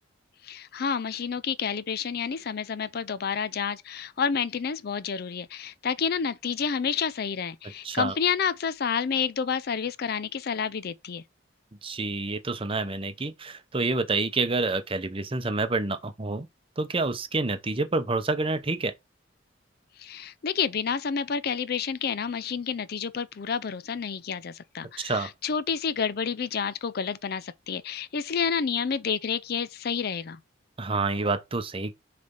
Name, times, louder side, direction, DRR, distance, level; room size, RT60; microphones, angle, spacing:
voice 1, 0.4-11.2 20.0-30.4, left 6 dB, 55° left, 0.4 m, -29 dB
voice 2, 7.8-8.1 11.8-16.5 16.8-18.9 25.0-25.3 30.8-31.9, right 3 dB, 30° right, 0.7 m, -28 dB
6.6 x 3.4 x 5.3 m
head